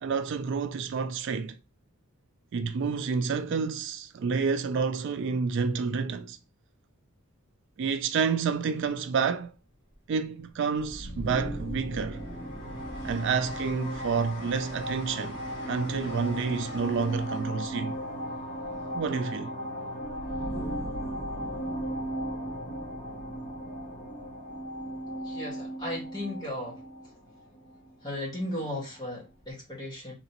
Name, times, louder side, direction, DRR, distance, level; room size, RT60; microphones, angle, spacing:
voice 1, 0.0-1.6 2.5-6.4 7.8-9.5 10.1-12.2 13.0-15.4 15.7-18.0 18.9-19.5, right 5 dB, 55° right, 0.3 m, -29 dB
Train, 9.8-10.6 11.0-19.7 21.3-21.6, left 1 dB, 55° left, 1.4 m, -49 dB
sound 1, 10.8-28.4, equal, 35° left, 1.2 m, -36 dB
voice 2, 25.2-26.8 28.0-30.1, left 1 dB, 20° left, 1.6 m, -36 dB
3.6 x 3.0 x 2.9 m
head